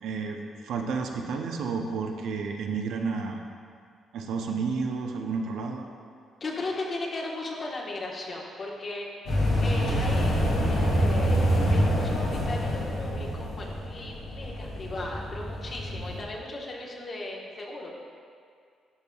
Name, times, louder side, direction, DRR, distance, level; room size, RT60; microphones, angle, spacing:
voice 1, 0.0-3.4 4.1-5.9, right 4 dB, 75° right, 2 dB, 0.6 m, -31 dB
voice 2, 6.4-9.1 9.6-11.4 11.7-17.9, left 2 dB, 50° left, -2 dB, 1.2 m, -37 dB
sound 1, 9.3-16.2, equal, 80° left, 1.7 m, -26 dB
11.0 x 5.3 x 2.3 m, 2.2 s
hypercardioid pair, 50°, 0 cm